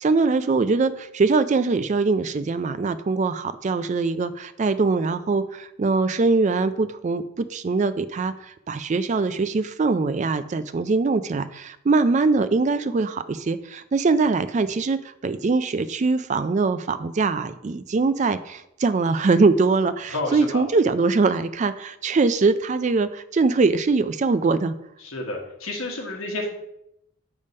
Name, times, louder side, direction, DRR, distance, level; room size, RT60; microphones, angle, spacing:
voice 1, 0.0-24.7, right 3 dB, 35° right, 12 dB, 0.3 m, -22 dB
voice 2, 20.1-20.6 25.0-26.5, left 2 dB, 70° left, 0 dB, 1.2 m, -30 dB
6.6 x 3.5 x 5.4 m, 0.79 s
head